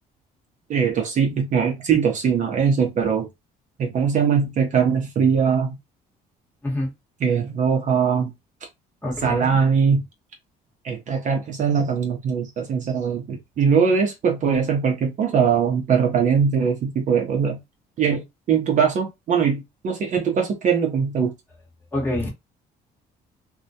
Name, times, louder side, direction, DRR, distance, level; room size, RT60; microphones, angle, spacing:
voice 1, 0.7-3.3 3.8-5.8 7.2-8.3 9.2-10.0 10.8-17.6 18.0-18.2 18.5-21.3, right 6 dB, 50° right, 0.6 m, -21 dB
voice 2, 9.0-9.6 21.9-22.3, left 1 dB, 10° left, 1.0 m, -26 dB
2.2 x 2.1 x 2.6 m
cardioid pair, 110°, 17 cm